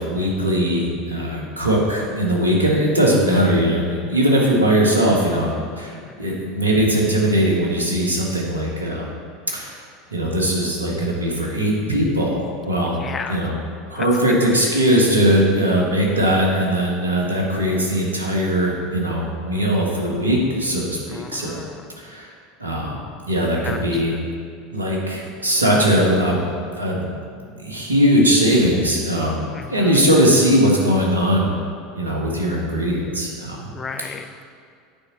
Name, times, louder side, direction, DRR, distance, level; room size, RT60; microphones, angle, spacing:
voice 1, 0.0-5.5 5.8-9.0 9.5-9.8 10.1-13.0 13.3-13.5 13.9-21.6 22.0-22.3 22.6-23.0 23.3-24.1 24.7-26.5 26.8-27.1 27.6-29.4 29.7-31.5 32.0-33.7, equal, 85° right, -2 dB, 1.5 m, -20 dB
voice 2, 6.0-6.4 12.9-13.5 14.0-14.2 14.5-14.6 21.1-21.9 23.6-24.2 29.5-30.1 33.7-34.3, left 5 dB, 25° left, 7 dB, 0.5 m, -35 dB
8.8 x 4.8 x 5.7 m, 2.3 s
figure-of-eight pair, 75°, 0 cm